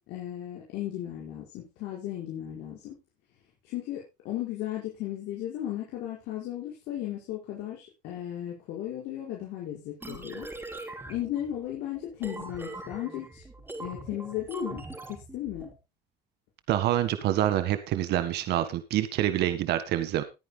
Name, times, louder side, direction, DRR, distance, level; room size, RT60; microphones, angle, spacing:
voice 1, 0.1-3.0 3.6-10.5 11.1-13.4 13.8-14.8 15.1-15.7, left 12 dB, 90° left, -3 dB, 5.2 m, -35 dB
sound 1, 10.0-15.7, right 2 dB, 10° right, 3.7 m, -42 dB
voice 2, 16.7-20.2, right 12 dB, 80° right, 11 dB, 1.6 m, -26 dB
21.0 x 9.4 x 2.2 m, 0.25 s
cardioid pair, 110°, 17 cm